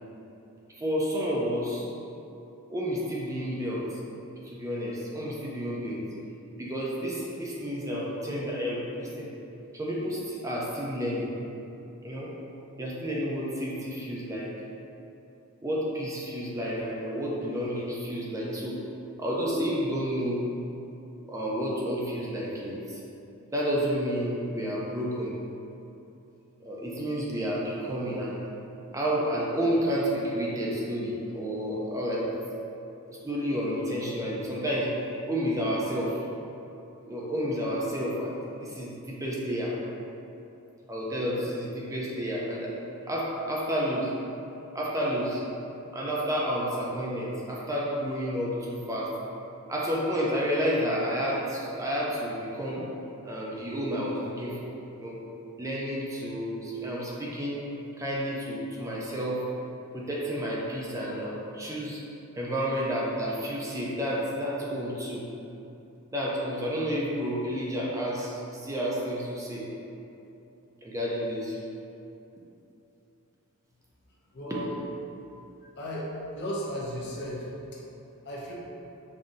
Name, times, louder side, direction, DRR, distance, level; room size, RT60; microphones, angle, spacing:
voice 1, 0.7-1.9 2.7-4.0 4.4-6.0 6.6-9.3 9.7-11.3 12.0-12.3 12.8-14.5 15.6-18.8 19.2-20.4 21.3-23.0 23.5-25.4 26.6-28.4 28.9-32.4 33.1-34.9 35.2-36.2 37.1-39.8 40.9-42.7 43.1-44.1 44.7-45.4 45.9-49.2 49.7-52.9 53.2-55.2 55.6-57.7 58.0-59.5 59.9-62.0 62.4-65.2 66.1-69.7 70.8-71.6 74.5-74.6, equal, 15° right, -5 dB, 0.4 m, -30 dB
voice 2, 74.3-74.7 75.8-76.1 76.3-77.5 77.7-77.8 78.2-78.5, equal, 50° left, -5 dB, 0.7 m, -35 dB
5.3 x 2.6 x 2.5 m, 2.9 s
head